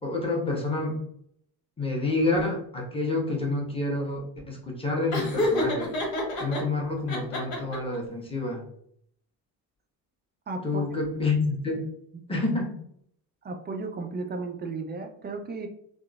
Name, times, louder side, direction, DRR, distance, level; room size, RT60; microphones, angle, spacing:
voice 1, 0.0-1.0 1.8-5.9 6.4-8.7 10.6-11.8 12.3-12.7, left 2 dB, 10° left, -2 dB, 1.1 m, -28 dB
Laughter, 5.1-6.6 7.1-8.0, left 1 dB, 70° left, 1.1 m, -27 dB
voice 2, 10.5-10.8 13.4-15.7, right 3 dB, 25° right, 5 dB, 0.3 m, -34 dB
3.6 x 2.0 x 2.3 m, 0.69 s
hypercardioid pair, 55°, 46 cm